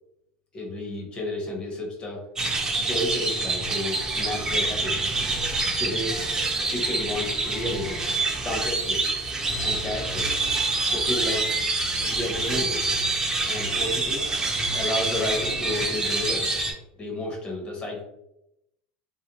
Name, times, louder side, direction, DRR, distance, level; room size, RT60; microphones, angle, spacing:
voice 1, 0.5-2.2 2.7-5.1 5.8-6.1 6.7-8.0 8.4-9.1 9.6-10.4 10.9-11.5 12.0-12.9 13.5-14.2 14.7-16.5 17.0-18.0, left 1 dB, 25° left, 0 dB, 0.8 m, -31 dB
sound 1, 2.4-16.7, right 3 dB, 15° right, 0.5 m, -26 dB
2.5 x 2.1 x 2.8 m, 0.83 s
supercardioid pair, 140°, 4 cm